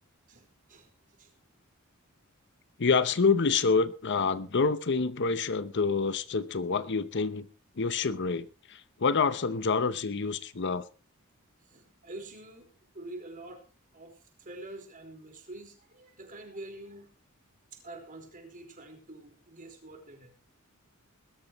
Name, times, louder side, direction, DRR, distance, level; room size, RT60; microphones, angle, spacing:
voice 1, 0.3-0.9 1.2-1.3 11.6-12.7 12.9-13.6 13.9-17.1 17.7-20.3, right 2 dB, 40° right, 4.7 m, -46 dB
voice 2, 2.8-7.5 7.8-10.9, left 4 dB, 55° left, 0.8 m, -27 dB
21.0 x 13.5 x 3.1 m
head